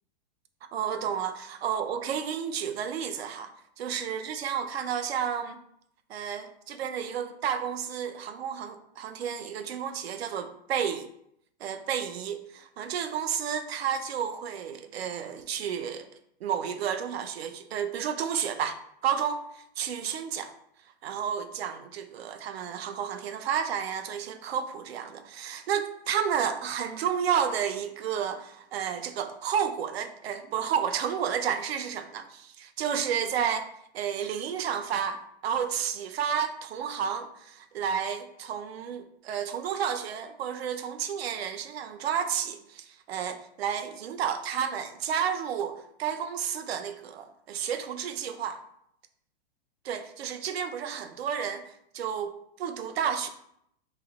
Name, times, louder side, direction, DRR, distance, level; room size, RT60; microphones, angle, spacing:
voice 1, 0.7-3.5 3.8-5.6 6.1-11.1 11.6-16.1 16.4-18.8 19.0-20.5 21.0-33.7 33.9-48.6 49.8-53.3, right 8 dB, 70° right, 0.5 m, -31 dB
3.2 x 2.8 x 4.0 m
hypercardioid pair, 175°, 32 cm